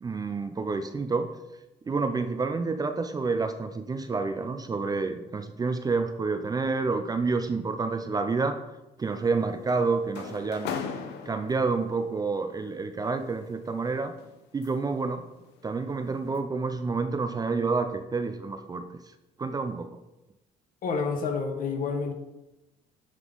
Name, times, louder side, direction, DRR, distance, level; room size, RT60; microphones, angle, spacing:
voice 1, 0.0-1.3 1.9-8.6 9.0-10.7 11.3-14.1 14.5-15.2 15.6-18.8 19.4-19.9, right 4 dB, 20° right, 8 dB, 0.4 m, -28 dB
sound 1, 9.0-12.0 13.1-15.0 15.4-15.7 16.1-16.4, left 6 dB, 85° left, 0.8 m, -39 dB
voice 2, 20.8-22.1, left 5 dB, 55° left, 5 dB, 1.1 m, -29 dB
9.1 x 3.8 x 3.9 m, 0.98 s
cardioid pair, 110°, 17 cm